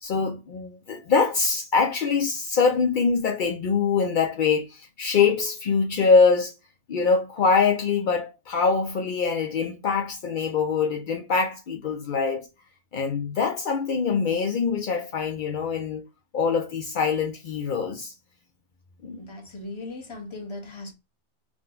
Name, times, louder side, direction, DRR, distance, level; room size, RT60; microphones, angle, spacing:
voice 1, 0.0-6.5 6.9-12.5 12.9-16.0 16.3-18.1 19.0-19.2, left 5 dB, 75° left, 0.4 m, -24 dB
voice 2, 19.2-20.9, left 2 dB, 25° left, 0.7 m, -38 dB
3.7 x 2.2 x 3.7 m
omnidirectional pair, 1.5 m